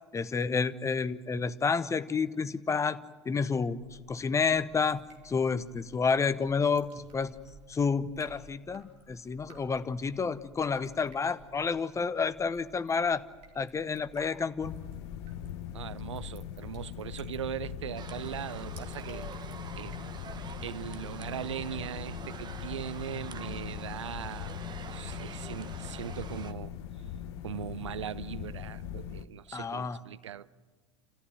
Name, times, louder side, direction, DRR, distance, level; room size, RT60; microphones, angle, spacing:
voice 1, 0.1-3.8 4.1-7.4 7.7-13.2 13.5-14.7 29.5-30.0, left 5 dB, 20° left, 0.9 m, -30 dB
Drip, 3.8-20.8, right 4 dB, 45° right, 4.0 m, -56 dB
sound 1, 14.6-29.3, left 10 dB, 60° left, 0.9 m, -41 dB
voice 2, 15.7-19.3 19.8-20.0 20.6-24.5 24.9-26.7 27.4-30.5, right 10 dB, 75° right, 0.7 m, -39 dB
sound 2, 18.0-26.5, right 6 dB, 30° right, 1.2 m, -45 dB
30.0 x 14.0 x 9.0 m
figure-of-eight pair, 75°, 15 cm